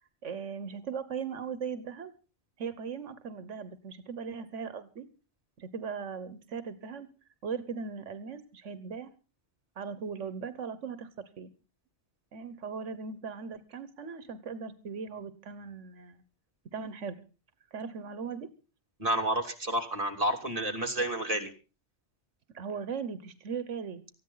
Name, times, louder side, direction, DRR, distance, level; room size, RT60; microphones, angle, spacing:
voice 1, 0.2-2.1 2.6-5.1 5.6-7.1 7.4-9.1 9.8-11.5 12.3-16.2 16.7-17.2 17.7-18.5 22.5-24.2, right 6 dB, 90° right, 14 dB, 1.5 m, -38 dB
voice 2, 19.0-21.5, right 1 dB, 30° right, 3 dB, 2.7 m, -30 dB
19.0 x 14.5 x 3.9 m, 0.34 s
omnidirectional pair, 1.2 m